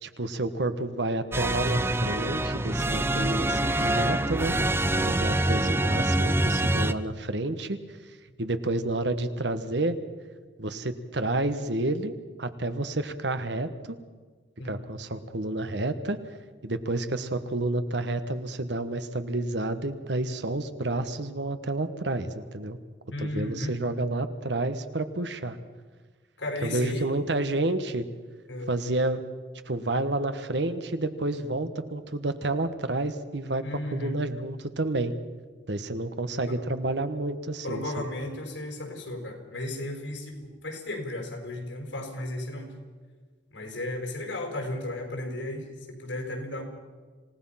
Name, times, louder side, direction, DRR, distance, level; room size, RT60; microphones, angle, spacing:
voice 1, 0.0-4.6 4.8-7.8 8.4-9.9 10.6-12.1 12.4-13.7 14.6-16.2 16.6-22.8 23.2-25.6 26.6-28.0 28.7-29.2 29.7-33.6 33.9-35.1 35.7-38.0, right 2 dB, 65° right, 10 dB, 1.3 m, -30 dB
sound 1, 1.3-6.9, right 1 dB, 15° right, 0.6 m, -25 dB
voice 2, 23.1-23.7 26.4-27.1 28.5-28.7 33.6-34.2 36.5-36.6 37.6-42.7 43.5-46.6, left 1 dB, 90° left, 2 dB, 5.0 m, -34 dB
27.0 x 17.5 x 5.8 m, 1.5 s
head